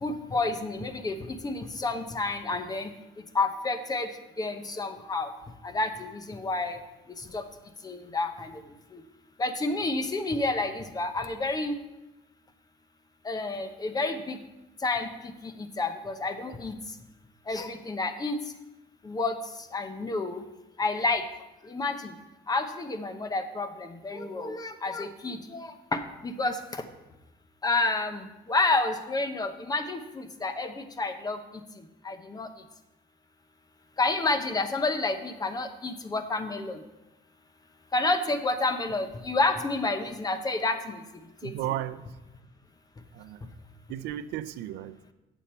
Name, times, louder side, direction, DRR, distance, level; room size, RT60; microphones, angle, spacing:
voice 1, 0.0-2.9 3.3-4.1 4.4-5.3 5.6-6.8 7.3-7.4 7.8-8.5 8.9-9.0 9.4-11.7 13.2-14.4 14.8-15.3 15.8-16.7 17.5-18.4 19.0-19.3 19.7-20.4 20.8-21.2 21.7-22.0 22.5-26.6 27.6-31.4 32.0-32.5 34.0-36.8 37.9-41.0 41.4-41.5, left 3 dB, 20° left, 9 dB, 0.8 m, -29 dB
voice 2, 41.4-42.1 43.1-43.5 43.9-45.0, right 13 dB, 85° right, 14 dB, 0.5 m, -34 dB
9.1 x 7.1 x 4.3 m, 1.0 s
cardioid pair, 110°, 17 cm